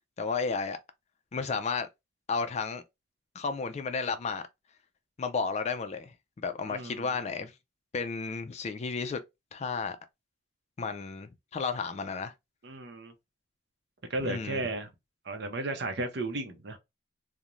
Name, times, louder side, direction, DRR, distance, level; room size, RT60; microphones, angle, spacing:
voice 1, 0.2-0.8 1.3-1.9 2.3-2.8 3.3-4.4 5.2-7.5 7.9-9.2 9.5-10.0 10.8-12.3 14.2-14.6, left 5 dB, 35° left, 0.3 m, -32 dB
voice 2, 6.7-7.1 12.6-13.1 14.1-14.9 15.3-16.8, right 2 dB, 65° right, 0.6 m, -34 dB
2.5 x 2.1 x 2.9 m
head